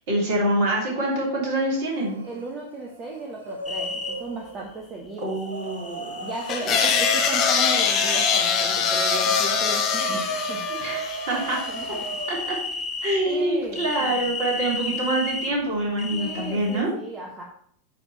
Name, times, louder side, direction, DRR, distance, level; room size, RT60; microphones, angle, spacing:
voice 1, 0.1-2.2 5.2-6.1 6.6-6.8 10.7-11.0 11.3-11.6 12.3-12.6 13.0-16.9, right 1 dB, 50° right, -3 dB, 2.9 m, -25 dB
sound 1, 1.9-2.5 2.8-4.7 5.4-12.6, right 3 dB, 70° right, 1.0 m, -35 dB
voice 2, 2.2-5.2 6.2-10.6 11.7-12.0 13.3-14.3 16.1-17.4, right 3 dB, 25° right, 0 dB, 1.1 m, -36 dB
sound 2, 3.7-4.1 5.3-6.9 7.5-9.4 9.8-13.2 13.7-15.5 16.0-16.8, left 4 dB, 10° left, 1.2 m, -35 dB
sound 3, 6.5-11.8, left 6 dB, 35° left, 1.3 m, -23 dB
8.9 x 3.7 x 4.6 m, 0.64 s
figure-of-eight pair, 90°, 0 cm